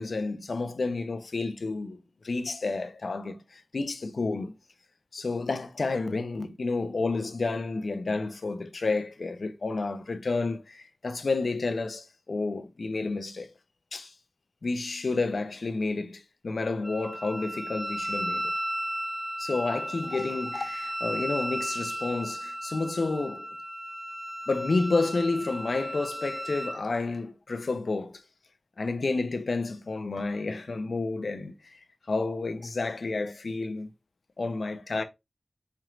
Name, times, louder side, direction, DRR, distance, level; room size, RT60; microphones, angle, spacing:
voice 1, 0.0-2.0 2.2-4.5 5.1-13.5 13.9-14.1 14.6-18.5 19.4-23.5 24.5-28.2 28.8-31.8 32.1-33.9 34.4-35.0, left 3 dB, 75° left, 0.5 m, -30 dB
Wind instrument woodwind instrument, 16.8-26.8, right 1 dB, 55° right, 2.1 m, -35 dB
4.5 x 2.9 x 2.4 m
wide cardioid pair, 70°, 0 cm